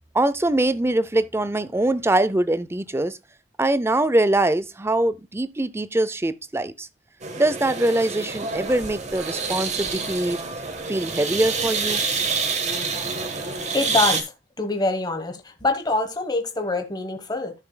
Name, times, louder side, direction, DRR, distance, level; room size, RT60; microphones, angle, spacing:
voice 1, 0.1-3.2 3.6-6.9 7.4-10.4 10.9-12.0, right 1 dB, 15° right, 0.5 m, -23 dB
sound 1, 7.2-14.2, right 4 dB, 40° right, 1.4 m, -27 dB
voice 2, 13.4-14.3 14.6-17.5, left 2 dB, 25° left, 1.2 m, -25 dB
14.0 x 5.9 x 2.3 m
head